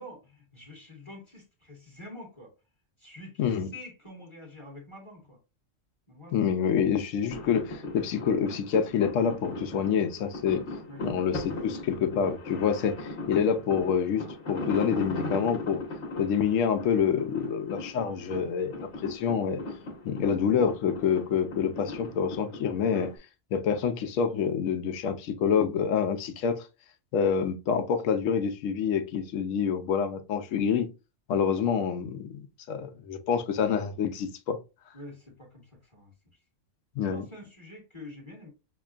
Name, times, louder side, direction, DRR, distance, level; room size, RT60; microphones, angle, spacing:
voice 1, 0.0-2.5 3.0-5.4 6.1-6.4 10.9-11.0 18.9-19.0 19.7-19.9 34.9-36.1 37.0-38.5, left 1 dB, 25° left, 1.3 m, -46 dB
voice 2, 3.4-3.7 6.3-10.7 11.0-15.8 16.2-19.6 20.0-23.1 23.5-26.7 27.1-30.9 31.3-34.6 37.0-37.2, left 7 dB, 75° left, 1.0 m, -27 dB
sound 1, 7.3-23.2, left 2 dB, 60° left, 1.4 m, -38 dB
5.9 x 2.2 x 2.4 m
omnidirectional pair, 1.3 m